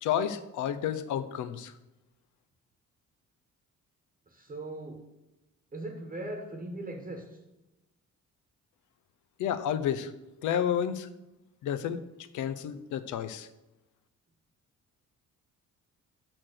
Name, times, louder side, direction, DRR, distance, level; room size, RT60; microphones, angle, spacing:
voice 1, 0.0-1.7 9.4-10.1 10.4-11.1 11.6-12.0 12.3-13.5, left 9 dB, 80° left, 12 dB, 0.6 m, -30 dB
voice 2, 4.3-5.0 5.7-7.4, right 1 dB, 30° right, 3 dB, 1.1 m, -39 dB
5.9 x 4.4 x 6.4 m, 0.95 s
cardioid pair, 90°, 30 cm